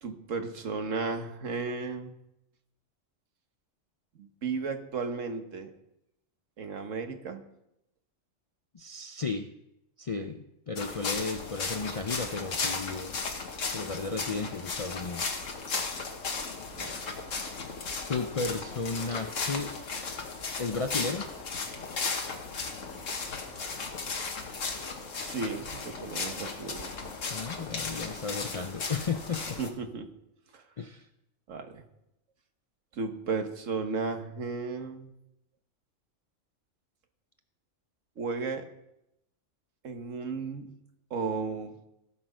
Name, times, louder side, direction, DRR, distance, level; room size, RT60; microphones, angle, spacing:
voice 1, 0.0-2.1 4.1-5.7 6.6-7.4 10.2-10.3 16.7-17.0 25.2-26.9 29.6-30.1 30.5-30.6 31.5-31.8 32.9-35.1 38.2-38.6 39.8-40.7 41.1-41.8, right 4 dB, 80° right, 6 dB, 1.5 m, -34 dB
voice 2, 8.7-9.5 10.0-13.2 13.7-15.3 18.1-19.7 20.6-21.3 27.3-29.6 30.8-31.1, left 4 dB, 50° left, 6 dB, 0.4 m, -34 dB
sound 1, 10.8-29.7, left 4 dB, 75° left, 1.7 m, -35 dB
17.0 x 6.1 x 5.0 m, 0.83 s
omnidirectional pair, 1.3 m